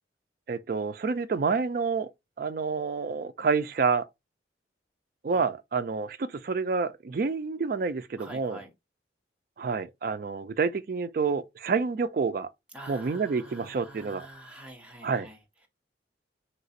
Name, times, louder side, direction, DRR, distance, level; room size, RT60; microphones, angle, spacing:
voice 1, 0.5-2.1 2.4-4.1 5.2-8.6 9.6-12.5 12.9-14.3 15.0-15.3, right 5 dB, 50° right, 0.3 m, -28 dB
voice 2, 8.2-8.7 12.7-15.4, right 1 dB, 5° right, 0.8 m, -46 dB
3.2 x 2.9 x 2.7 m
head